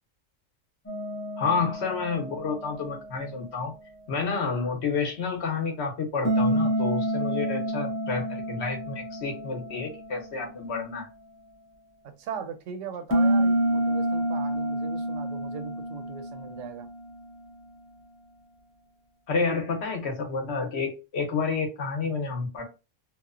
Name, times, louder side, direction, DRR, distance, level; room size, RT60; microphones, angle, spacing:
sound 1, 0.9-3.9 6.2-10.7 13.1-17.6, right 1 dB, 15° left, 0.4 m, -29 dB
voice 1, 1.4-3.7 4.1-11.1 19.3-22.6, left 4 dB, 60° left, 0.9 m, -29 dB
voice 2, 12.2-16.9, right 7 dB, 70° right, 0.9 m, -38 dB
2.9 x 2.1 x 2.4 m
omnidirectional pair, 1.4 m